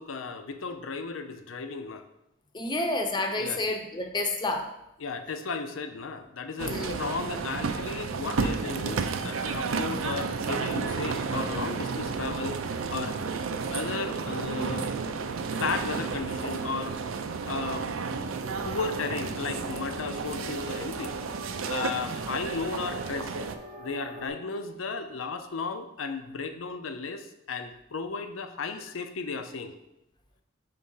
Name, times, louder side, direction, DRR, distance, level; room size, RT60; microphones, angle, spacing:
voice 1, 0.0-2.0 3.4-3.7 5.0-12.6 12.9-13.2 13.7-14.9 15.6-17.0 17.5-17.9 18.1-18.3 18.6-21.1 21.6-23.3 23.8-29.8, left 4 dB, 80° left, 8 dB, 0.6 m, -34 dB
voice 2, 2.5-4.7 6.7-7.0 17.4-17.5, left 2 dB, 20° left, 4 dB, 0.7 m, -29 dB
sound 1, 6.6-23.6, right 5 dB, 85° right, 0.5 m, -32 dB
sound 2, 18.4-24.3, right 1 dB, 40° right, 0.9 m, -43 dB
5.4 x 3.7 x 5.5 m, 0.85 s
head